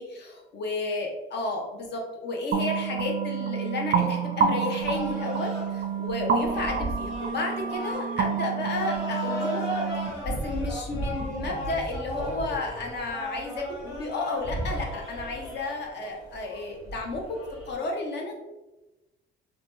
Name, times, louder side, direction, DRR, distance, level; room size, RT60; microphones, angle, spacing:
voice 1, 0.0-9.7 9.9-18.3, left 2 dB, 60° left, 0 dB, 0.7 m, -32 dB
sound 1, 2.5-10.1, right 6 dB, 45° right, 0.4 m, -28 dB
sound 2, 4.8-17.7, equal, 75° left, 1.3 m, -35 dB
2.8 x 2.2 x 2.9 m, 1.1 s
cardioid pair, 90°, 20 cm